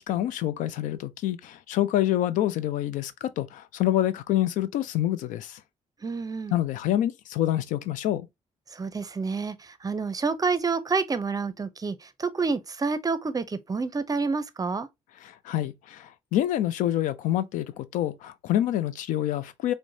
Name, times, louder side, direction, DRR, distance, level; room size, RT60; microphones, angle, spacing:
voice 1, 0.0-5.6 6.5-8.3 15.2-19.7, left 12 dB, 90° left, 0.4 m, -27 dB
voice 2, 6.0-6.6 8.7-14.9, right 4 dB, 30° right, 0.5 m, -28 dB
4.6 x 2.1 x 2.6 m
cardioid pair, 70°, 13 cm